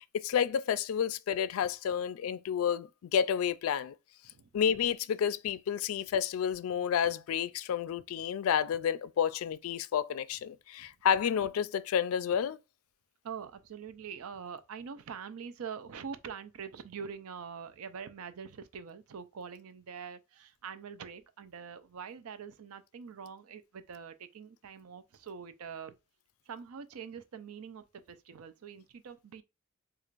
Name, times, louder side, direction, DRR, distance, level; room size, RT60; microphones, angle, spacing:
voice 1, 0.0-3.9 4.5-12.6, left 8 dB, 80° left, 0.3 m, -30 dB
voice 2, 13.2-25.9 26.5-29.4, right 6 dB, 90° right, 0.5 m, -44 dB
4.4 x 2.4 x 2.4 m
head